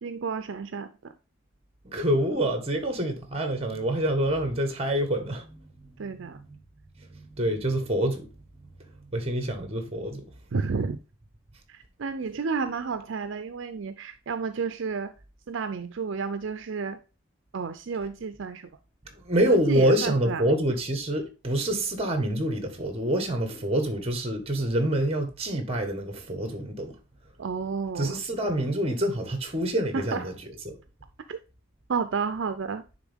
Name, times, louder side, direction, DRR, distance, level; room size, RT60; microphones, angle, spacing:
voice 1, 0.0-1.1 6.0-6.4 10.5-11.0 11.7-15.1 15.5-17.0 17.5-18.7 19.5-20.5 27.4-28.2 29.9-30.3 31.3-31.4 31.9-32.8, right 5 dB, 65° right, 0.5 m, -31 dB
voice 2, 1.8-6.6 7.0-8.3 9.1-10.2 19.2-27.0 28.0-30.3 30.6-30.7, right 1 dB, 30° right, 1.3 m, -27 dB
9.6 x 3.6 x 3.5 m
head